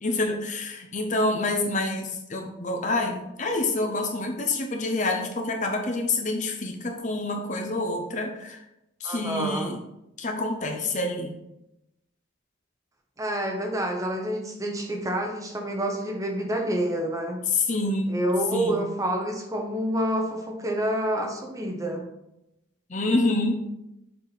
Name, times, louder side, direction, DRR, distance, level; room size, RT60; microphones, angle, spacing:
voice 1, 0.0-8.6 9.0-9.8 10.2-11.3 17.5-18.1 18.5-18.8 22.9-23.6, left 2 dB, 35° left, 3 dB, 0.8 m, -27 dB
voice 2, 9.0-9.7 13.2-17.4 18.1-22.0, right 1 dB, 15° right, 2 dB, 0.9 m, -28 dB
7.0 x 5.0 x 4.0 m, 0.86 s
head